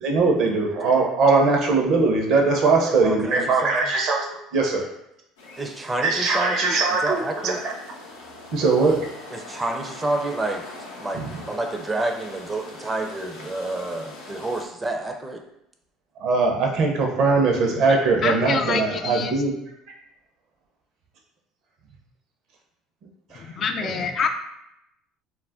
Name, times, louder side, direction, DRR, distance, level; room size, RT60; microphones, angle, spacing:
voice 1, 0.0-4.9 6.0-7.7 8.5-9.0 11.1-11.3 16.2-19.5 23.3-23.5 23.8-24.1, right 3 dB, 60° right, 1 dB, 0.7 m, -21 dB
voice 2, 2.8-3.7 5.6-7.6 9.3-10.6 11.0-15.4, right 2 dB, 20° right, 4 dB, 0.4 m, -29 dB
sound 1, 5.4-14.7, left 2 dB, 90° left, 0.6 m, -42 dB
voice 3, 18.2-19.4 23.3-24.3, left 5 dB, 45° left, 6 dB, 0.3 m, -26 dB
2.4 x 2.1 x 3.5 m, 0.82 s
supercardioid pair, 85°, 0 cm